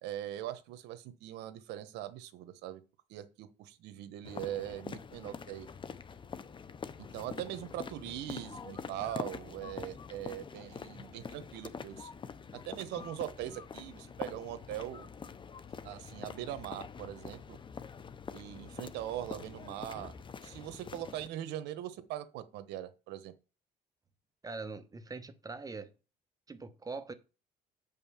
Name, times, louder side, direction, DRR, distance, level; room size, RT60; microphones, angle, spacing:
voice 1, 0.0-2.8 3.1-5.7 7.0-12.1 12.7-15.1 15.8-17.6 18.3-20.1 20.4-23.3, right 12 dB, 90° right, 1.1 m, -41 dB
sound 1, 4.2-21.3, left 6 dB, 30° left, 0.7 m, -45 dB
voice 2, 24.4-25.9 26.5-27.1, right 3 dB, 20° right, 1.1 m, -42 dB
7.5 x 5.5 x 7.1 m
cardioid pair, 110°, 17 cm